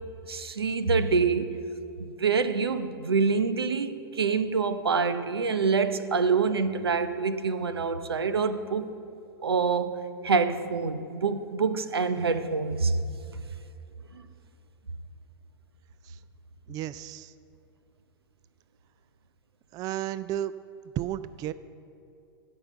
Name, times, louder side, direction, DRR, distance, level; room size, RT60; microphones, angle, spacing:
voice 1, 0.3-1.5 2.0-8.9 9.4-13.0, right 5 dB, 85° right, 12 dB, 0.7 m, -26 dB
voice 2, 16.7-17.3 19.7-20.5 21.0-21.5, right 12 dB, 30° right, 15 dB, 0.3 m, -33 dB
15.0 x 5.6 x 7.9 m, 2.7 s
hypercardioid pair, 105°, 13 cm